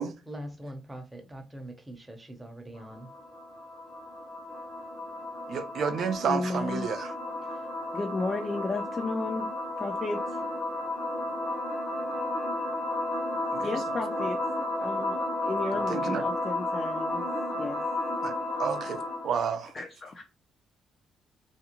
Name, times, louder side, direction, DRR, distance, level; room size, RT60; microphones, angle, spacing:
voice 1, 0.3-3.1, right 1 dB, 15° right, 0.7 m, -42 dB
sound 1, 2.7-19.4, left 1 dB, 60° left, 1.0 m, -33 dB
voice 2, 5.5-7.1 13.5-13.7 15.9-16.2 18.2-18.3 18.6-19.8, right 6 dB, 65° right, 0.5 m, -30 dB
voice 3, 6.3-6.9 7.5-7.6 7.9-9.5 9.8-10.4 13.6-17.3 17.6-17.8 19.7-20.2, left 3 dB, 35° left, 0.5 m, -33 dB
2.5 x 2.2 x 3.0 m
cardioid pair, 90°, 0 cm